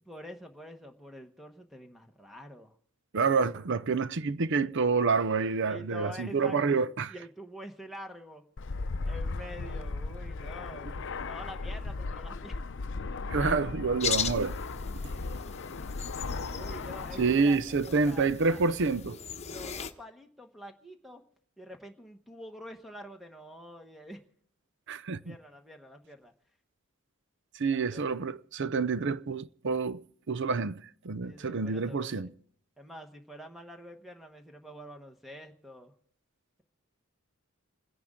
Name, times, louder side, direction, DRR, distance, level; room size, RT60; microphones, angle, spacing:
voice 1, 0.1-2.8 5.7-8.4 8.7-10.9 11.2-12.6 16.4-18.6 19.5-21.2 21.6-24.2 25.2-26.3 27.7-28.0 31.2-32.3 32.8-35.9, equal, ahead, 1.1 m, -47 dB
voice 2, 3.1-7.1 13.3-14.6 17.2-19.2 24.9-25.3 27.5-32.3, right 4 dB, 55° right, 0.6 m, -28 dB
Fixed-wing aircraft airplane, 8.6-17.4, left 3 dB, 60° left, 0.6 m, -36 dB
sound 1, 14.0-19.9, left 7 dB, 30° left, 1.0 m, -38 dB
28.5 x 10.5 x 3.7 m
head